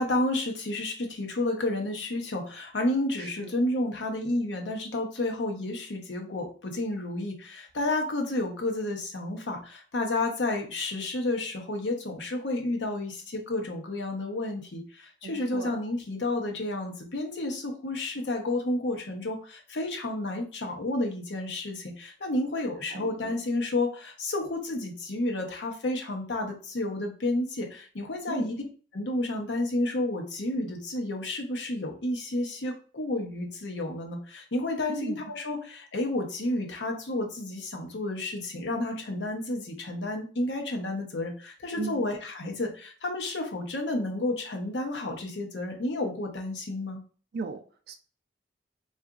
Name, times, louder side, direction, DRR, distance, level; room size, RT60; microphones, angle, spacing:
voice 1, 0.0-28.6 28.9-47.0, left 2 dB, 70° left, 2 dB, 0.8 m, -31 dB
voice 2, 3.2-3.5 15.2-15.8 22.9-23.4 28.3-28.5 34.9-35.2 41.8-42.0 47.3-47.9, right 4 dB, 55° right, 6 dB, 0.3 m, -37 dB
3.8 x 2.4 x 2.4 m, 0.39 s
head